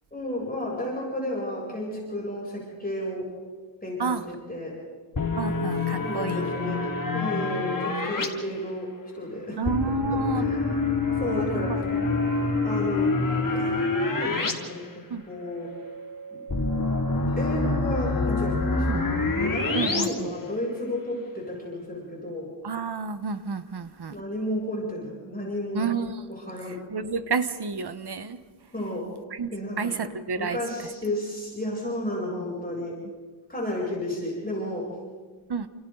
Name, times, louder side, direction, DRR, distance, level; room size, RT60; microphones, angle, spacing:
voice 1, 0.1-3.3 3.8-4.1 4.5-4.8 6.0-6.8 7.1-8.9 9.1-9.6 10.1-10.9 11.2-11.7 12.6-13.1 13.5-15.7 16.3-16.4 17.3-19.0 19.4-22.5 24.1-25.9 26.4-26.8 28.7-29.1 29.5-29.9 30.4-33.0 33.5-34.9, left 1 dB, 20° left, -5 dB, 7.8 m, -32 dB
sound 1, 5.1-8.3 9.6-14.5 14.8-14.9 16.5-20.0, left 3 dB, 45° left, 3.1 m, -26 dB
voice 2, 5.4-6.5 9.6-10.5 11.3-12.1 15.1-15.2 18.9-19.1 19.7-20.3 22.6-24.1 25.7-26.2 26.7-28.4 29.3-29.5 29.8-30.6 35.5-35.7, right 5 dB, 55° right, 11 dB, 1.3 m, -30 dB
sound 2, 15.3-20.2, right 5 dB, 40° right, 4.1 m, -43 dB
30.0 x 28.5 x 4.0 m, 1.4 s
wide cardioid pair, 105°, 46 cm